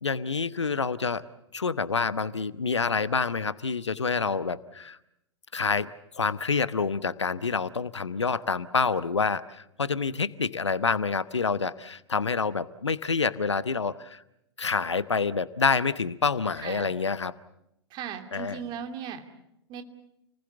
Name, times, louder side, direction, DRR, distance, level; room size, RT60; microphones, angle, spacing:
voice 1, 0.0-1.2 1.5-5.0 5.5-5.9 6.1-14.2 14.6-17.3 18.3-18.6, left 5 dB, 80° left, 15 dB, 1.0 m, -27 dB
voice 2, 16.6-17.0 17.9-19.2 19.7-19.8, right 8 dB, 30° right, 6 dB, 2.8 m, -37 dB
29.5 x 20.0 x 7.0 m, 0.81 s
figure-of-eight pair, 105°, 15 cm